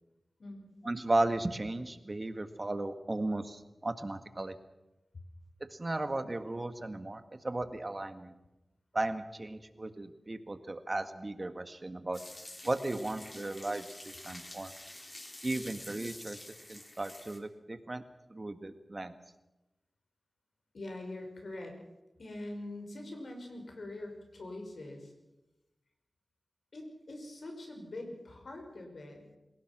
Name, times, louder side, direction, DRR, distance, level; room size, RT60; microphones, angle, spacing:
voice 1, 0.8-4.6 5.7-8.3 8.9-12.2 12.6-14.7 15.4-16.4 16.7-18.0 18.3-19.2, right 2 dB, 40° right, 10 dB, 1.7 m, -35 dB
sound 1, 12.1-17.4, left 1 dB, 30° left, 3.7 m, -48 dB
voice 2, 20.7-21.8 22.2-25.1 26.7-29.4, left 1 dB, 75° left, 3 dB, 5.9 m, -43 dB
27.5 x 17.0 x 6.2 m, 0.99 s
cardioid pair, 50°, 0 cm